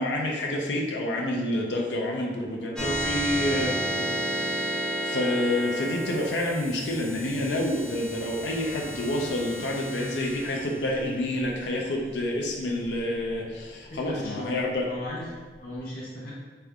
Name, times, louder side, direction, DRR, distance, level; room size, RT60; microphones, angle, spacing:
voice 1, 0.0-14.9, left 1 dB, 80° left, -1 dB, 0.6 m, -28 dB
sound 1, 2.8-13.6, right 1 dB, 5° left, 0.7 m, -33 dB
voice 2, 13.9-14.5 14.9-16.3, left 1 dB, 55° left, -7 dB, 0.8 m, -37 dB
3.4 x 3.4 x 3.5 m, 1.4 s
head